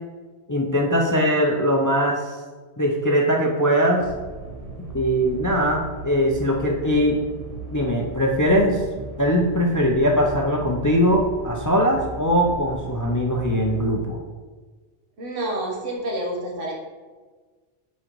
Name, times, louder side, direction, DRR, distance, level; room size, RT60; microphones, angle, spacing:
voice 1, 0.5-2.4 2.8-4.1 4.9-7.2 7.7-8.8 9.2-14.2, equal, 30° left, 0 dB, 0.3 m, -21 dB
sound 1, 4.0-13.9, right 3 dB, 50° right, 0.4 m, -37 dB
voice 2, 15.2-16.7, right 1 dB, 85° right, -1 dB, 1.6 m, -28 dB
9.2 x 3.8 x 3.1 m, 1.4 s
omnidirectional pair, 1.2 m